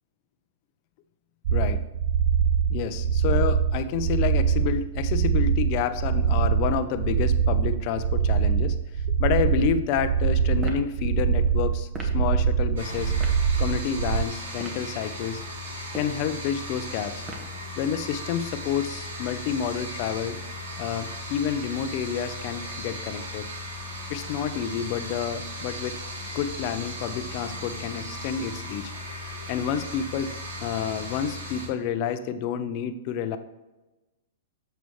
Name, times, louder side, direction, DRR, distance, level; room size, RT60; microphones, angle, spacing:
sound 1, 1.5-14.2, right 7 dB, 60° right, 0.4 m, -23 dB
voice 1, 2.7-8.8 9.2-13.1 13.6-15.4 15.9-17.2 17.8-20.4 20.8-23.5 24.1-26.0 26.3-28.9 29.5-30.3 30.6-33.4, left 8 dB, 45° left, 11 dB, 0.6 m, -29 dB
sound 2, 10.6-10.9 11.9-12.2 13.2-13.4 14.5-14.9 15.8-16.2 17.3-17.6, right 1 dB, 20° right, 1.4 m, -39 dB
sound 3, 12.8-31.7, left 1 dB, 85° right, 2.9 m, -37 dB
8.3 x 6.7 x 3.2 m, 1.1 s
hypercardioid pair, 135°, 0 cm